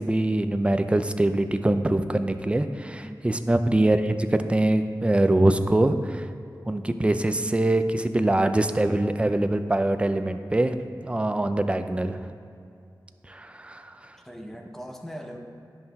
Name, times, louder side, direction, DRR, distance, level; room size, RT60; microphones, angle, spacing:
voice 1, 0.0-6.3 6.7-10.7 11.0-12.3 13.3-14.1, right 1 dB, 15° right, 9 dB, 0.3 m, -23 dB
voice 2, 14.1-15.4, equal, 5° left, 2 dB, 0.7 m, -40 dB
10.5 x 5.5 x 2.2 m, 2.4 s
wide cardioid pair, 75°, 8 cm